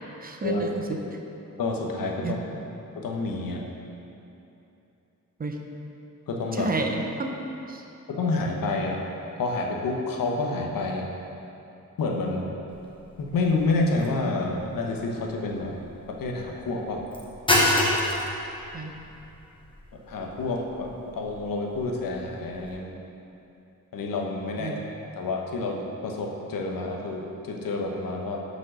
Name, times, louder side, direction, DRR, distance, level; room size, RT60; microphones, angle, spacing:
voice 1, 0.2-1.0 2.2-2.5 5.4-5.6 6.5-7.8 18.7-18.9 24.6-24.8, right 3 dB, 30° right, 3 dB, 0.5 m, -31 dB
voice 2, 1.6-2.4 2.9-3.6 6.3-6.7 8.1-9.0 9.4-11.0 12.0-12.4 13.2-15.7 16.1-17.0 20.1-22.9 23.9-24.7 25.1-28.4, left 3 dB, 90° left, 0 dB, 1.0 m, -28 dB
sound 1, 12.7-22.8, left 1 dB, 15° left, 0.9 m, -30 dB
6.3 x 5.2 x 6.1 m, 2.9 s
wide cardioid pair, 160°, 33 cm